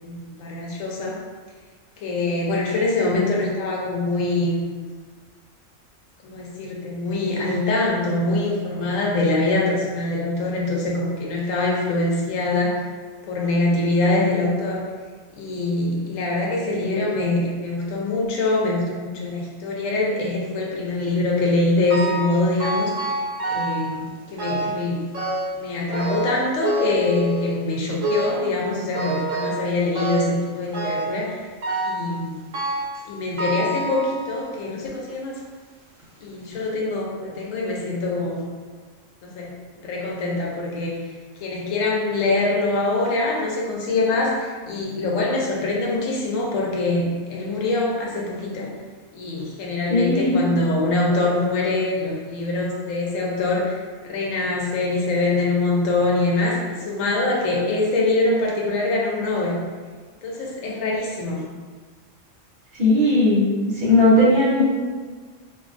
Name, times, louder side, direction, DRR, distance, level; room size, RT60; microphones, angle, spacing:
voice 1, 0.0-1.2 2.0-4.6 6.2-12.8 13.3-14.9 15.4-22.9 23.5-25.0 25.5-31.4 31.8-32.3 33.0-35.4 36.2-38.5 39.2-39.5 39.8-41.1 41.4-48.7 49.1-53.8 54.0-59.6 60.2-61.4, left 2 dB, 80° left, -3 dB, 1.0 m, -24 dB
sound 1, 21.9-22.3 22.6-23.9 24.4-24.8 25.1-25.6 25.9-27.6 28.0-28.5 28.9-29.6 30.0-30.4 30.7-31.2 31.6-32.1 32.5-33.0 33.4-34.4 35.1-35.2 36.0-36.1 36.5-36.6, right 1 dB, 80° right, 1.0 m, -26 dB
voice 2, 49.9-50.4 62.8-63.5 63.7-64.6, left 1 dB, 55° right, -9 dB, 1.0 m, -17 dB
2.5 x 2.2 x 2.5 m, 1.5 s
omnidirectional pair, 1.3 m